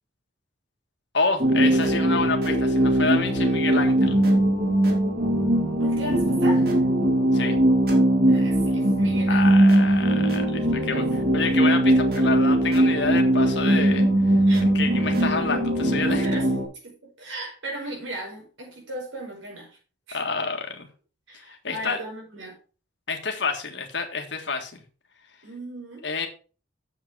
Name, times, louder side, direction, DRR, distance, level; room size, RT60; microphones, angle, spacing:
voice 1, 1.1-4.2 7.3-7.6 9.3-14.0 14.7-16.3 20.1-20.9 21.5-22.0 23.1-24.8 26.0-26.3, left 4 dB, 70° left, 1.7 m, -28 dB
sound 1, 1.4-16.6, right 1 dB, 50° right, 2.3 m, -20 dB
voice 2, 5.8-6.8 8.2-9.6 10.7-11.0 14.4-14.6 16.2-16.4 16.8-19.7 20.1-20.2 21.3-22.6 25.4-26.0, right 1 dB, 90° right, 5.2 m, -37 dB
7.6 x 7.4 x 4.9 m
head